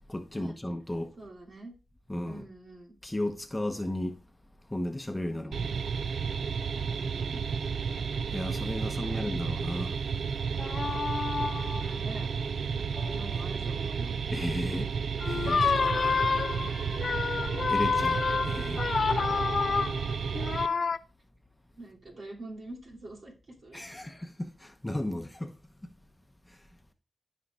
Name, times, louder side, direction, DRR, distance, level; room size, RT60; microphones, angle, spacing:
voice 1, 0.1-1.1 2.1-2.5 3.0-4.2 4.7-5.8 8.3-10.0 14.3-14.9 15.3-15.7 17.7-18.9 23.7-25.5 25.8-25.9 26.5-26.6, left 1 dB, 15° left, 0.7 m, -34 dB
voice 2, 1.2-1.7 2.3-3.0 5.3-5.7 6.8-7.4 8.8-9.3 11.3-12.3 13.0-14.1 17.1-17.2 19.6-19.7 21.8-24.1, right 2 dB, 60° right, 2.6 m, -46 dB
AC Compressor (on), 5.5-20.7, right 6 dB, 80° right, 0.4 m, -32 dB
sound 1, 10.6-11.9 13.0-13.3 15.2-21.0, left 5 dB, 60° left, 0.3 m, -29 dB
12.5 x 5.3 x 2.4 m
cardioid pair, 55°, 0 cm